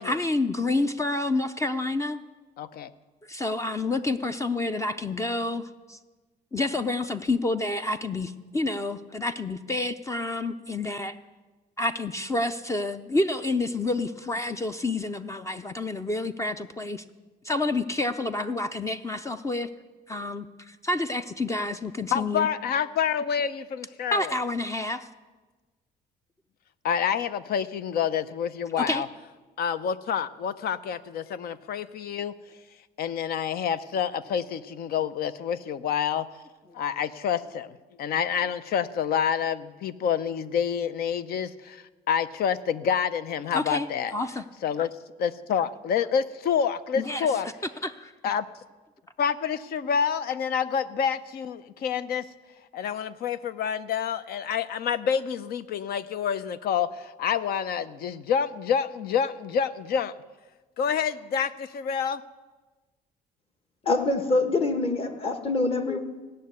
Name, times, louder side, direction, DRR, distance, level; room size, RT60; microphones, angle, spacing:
voice 1, 0.0-2.2 3.3-6.0 6.5-11.2 11.8-17.0 17.4-19.7 20.1-22.5 24.1-25.1 28.8-29.0 43.5-44.4 47.0-47.5 47.8-48.1, left 2 dB, 15° left, 10 dB, 0.5 m, -29 dB
voice 2, 2.6-2.9 22.1-24.4 26.8-29.1 29.6-32.3 33.0-36.3 36.7-37.7 38.0-44.1 44.6-44.9 45.2-47.5 48.2-48.5 49.2-52.3 52.7-60.1 60.8-62.2, left 7 dB, 65° left, 14 dB, 0.7 m, -28 dB
voice 3, 63.8-66.0, left 3 dB, 35° left, 7 dB, 1.5 m, -25 dB
16.0 x 6.6 x 9.4 m, 1.3 s
cardioid pair, 110°, 17 cm